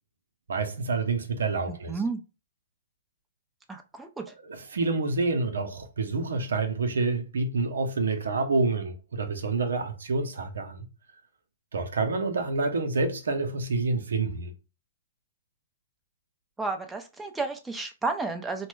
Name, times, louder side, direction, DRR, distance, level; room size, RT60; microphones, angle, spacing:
voice 1, 0.5-2.0 4.4-10.9 11.7-14.5, right 3 dB, 80° right, 0.7 m, -28 dB
voice 2, 1.7-2.2 3.7-4.3 16.6-18.7, right 3 dB, 10° right, 0.5 m, -32 dB
3.0 x 2.2 x 3.1 m
hypercardioid pair, 120°, 0 cm